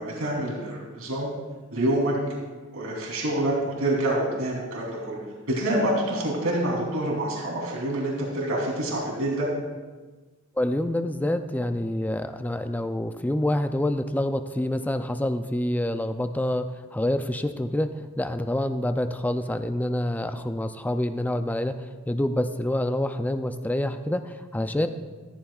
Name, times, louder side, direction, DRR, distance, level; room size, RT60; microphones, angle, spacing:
voice 1, 0.0-1.3 1.7-2.1 2.7-5.2 5.5-9.5, right 1 dB, 80° right, -3 dB, 3.2 m, -27 dB
voice 2, 10.6-24.9, left 1 dB, 10° left, 8 dB, 0.4 m, -27 dB
14.0 x 14.0 x 2.4 m, 1.3 s
head